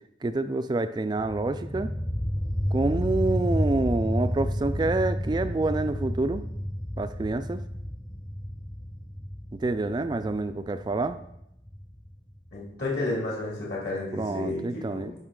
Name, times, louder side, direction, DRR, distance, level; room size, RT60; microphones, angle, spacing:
voice 1, 0.2-1.9 2.7-6.4 7.0-7.6 9.6-11.2 14.1-15.1, right 2 dB, 25° right, 11 dB, 0.3 m, -27 dB
sound 1, 1.2-12.7, equal, 15° left, 0.7 m, -31 dB
voice 2, 12.5-15.1, left 2 dB, 60° left, -5 dB, 2.5 m, -32 dB
11.0 x 5.4 x 3.7 m, 0.79 s
head